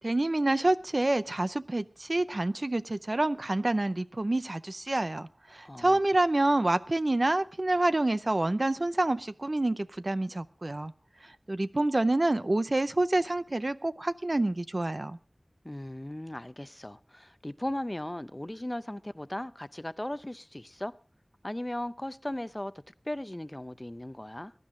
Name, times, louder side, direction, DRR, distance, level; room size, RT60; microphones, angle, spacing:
voice 1, 0.0-10.9 11.2-15.2, right 2 dB, 55° right, 0.6 m, -27 dB
voice 2, 5.6-6.0 15.6-20.9 21.4-24.5, left 1 dB, 25° left, 0.6 m, -37 dB
21.5 x 11.0 x 3.7 m
wide cardioid pair, 45°, 0 cm